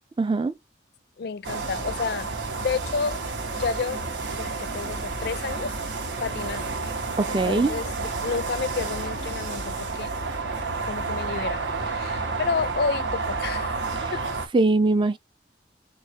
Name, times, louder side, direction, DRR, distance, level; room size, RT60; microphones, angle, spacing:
voice 1, 0.2-0.6 7.2-7.8 14.0-14.1 14.5-15.2, right 3 dB, 25° right, 0.4 m, -22 dB
voice 2, 1.2-2.3 2.6-3.2 3.6-4.0 4.4-5.7 6.2-6.7 7.3-10.1 10.8-13.8 14.1-14.4, left 5 dB, 60° left, 0.4 m, -30 dB
sound 1, 1.4-14.5, right 3 dB, 90° right, 0.9 m, -30 dB
3.8 x 2.3 x 4.3 m
head